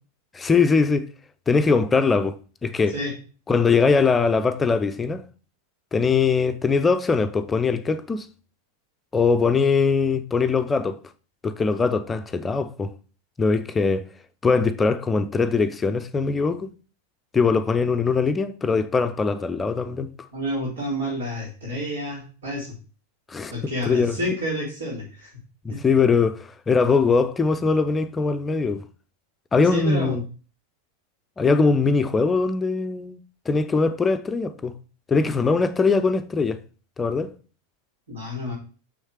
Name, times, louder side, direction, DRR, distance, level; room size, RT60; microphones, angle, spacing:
voice 1, 0.3-1.1 1.5-3.0 3.5-5.2 5.9-8.3 9.1-11.0 11.4-12.9 13.4-14.1 14.4-16.7 17.3-20.1 23.3-23.5 23.9-24.2 25.6-28.8 29.5-30.2 31.4-33.2 33.5-34.7 35.1-36.6 37.0-37.3, left 4 dB, 15° left, 0.7 m, -21 dB
voice 2, 20.3-22.7 23.5-25.3 25.7-25.8 29.7-30.2 38.1-38.5, equal, 65° right, 4.1 m, -29 dB
6.5 x 6.4 x 4.7 m
figure-of-eight pair, 90°, 0 cm